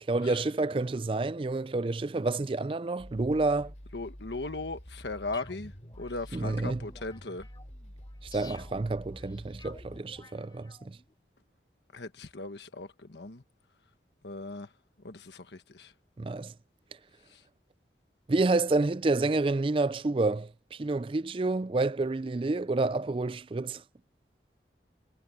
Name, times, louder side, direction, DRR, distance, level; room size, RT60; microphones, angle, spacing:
voice 1, 0.1-3.7 6.3-6.9 8.2-11.0 16.2-16.5 18.3-23.8, right 3 dB, 30° right, 0.4 m, -29 dB
sound 1, 3.0-10.0, equal, 45° left, 3.5 m, -47 dB
voice 2, 3.9-7.5 11.9-13.4 14.2-14.7 15.0-15.9 17.3-17.4, left 3 dB, 80° left, 1.3 m, -38 dB
sound 2, 5.3-11.1, left 3 dB, 25° left, 4.7 m, -54 dB
head